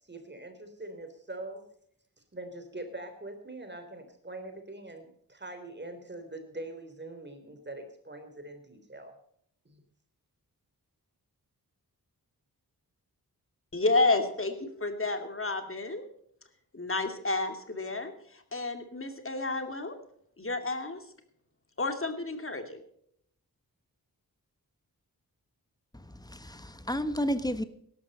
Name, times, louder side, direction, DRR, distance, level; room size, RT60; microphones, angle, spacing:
voice 1, 0.0-1.6 2.3-9.1 9.7-9.8, right 2 dB, 30° right, 7 dB, 3.5 m, -43 dB
voice 2, 13.7-16.0 16.7-20.0 20.4-21.0 21.8-22.8, left 3 dB, 35° left, 6 dB, 2.6 m, -30 dB
voice 3, 25.9-27.6, equal, 10° left, 11 dB, 1.3 m, -32 dB
17.5 x 13.5 x 4.2 m, 0.68 s
wide cardioid pair, 95°, 37 cm